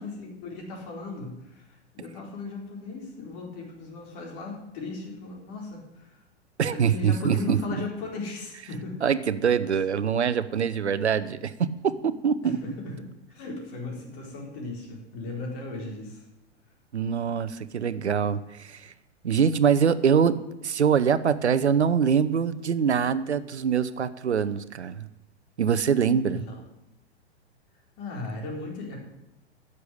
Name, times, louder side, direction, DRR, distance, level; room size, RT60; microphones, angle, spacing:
voice 1, 0.0-6.2 6.7-9.1 12.4-13.0 13.3-16.3 26.3-26.5 28.0-29.1, left 3 dB, 40° left, 0 dB, 4.1 m, -37 dB
voice 2, 6.6-7.6 9.0-11.5 11.8-12.6 16.9-18.9 19.2-20.4 20.6-25.1 25.6-26.4, right 7 dB, 80° right, 14 dB, 0.8 m, -24 dB
10.5 x 7.0 x 8.5 m, 0.90 s
figure-of-eight pair, 105°, 33 cm